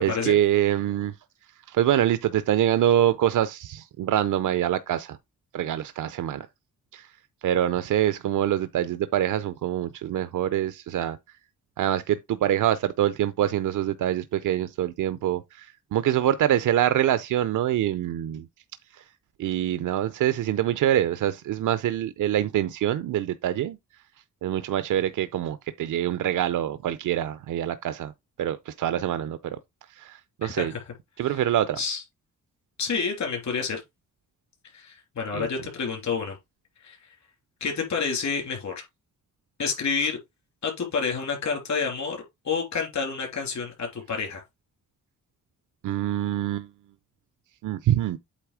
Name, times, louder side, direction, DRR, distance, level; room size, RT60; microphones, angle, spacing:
voice 1, 0.0-1.1 1.7-5.2 5.5-6.5 6.9-7.1 7.4-11.2 11.8-18.5 18.9-19.0 19.4-23.8 24.4-28.1 28.4-29.6 29.9-30.7 31.2-31.8 35.3-35.5 45.8-46.7 47.6-48.2, right 11 dB, 75° right, 0.5 m, -25 dB
voice 2, 30.4-30.8 31.2-31.4 31.8-32.0 32.8-33.8 34.7-36.4 36.8-37.0 37.6-38.8 39.6-40.2 40.6-42.2 42.4-44.4, left 5 dB, 65° left, 3.2 m, -29 dB
8.3 x 3.1 x 4.8 m
cardioid pair, 105°, 31 cm